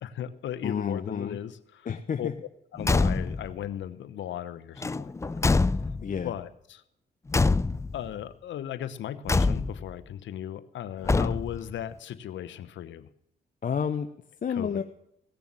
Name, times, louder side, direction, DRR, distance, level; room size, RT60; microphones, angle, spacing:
voice 1, 0.0-1.9 2.2-2.3 2.7-5.4 6.2-6.8 7.9-13.1 14.5-14.8, left 10 dB, 70° left, 13 dB, 0.9 m, -37 dB
voice 2, 0.6-1.4 1.9-2.3 6.0-6.3 13.6-14.1 14.4-14.8, left 7 dB, 45° left, 8 dB, 0.8 m, -30 dB
Car / Truck / Slam, 2.8-3.5 4.8-6.2 7.3-8.1 9.3-9.9 11.0-11.7, left 3 dB, 15° left, 0.4 m, -25 dB
16.5 x 7.0 x 7.5 m, 0.77 s
supercardioid pair, 65°, 20 cm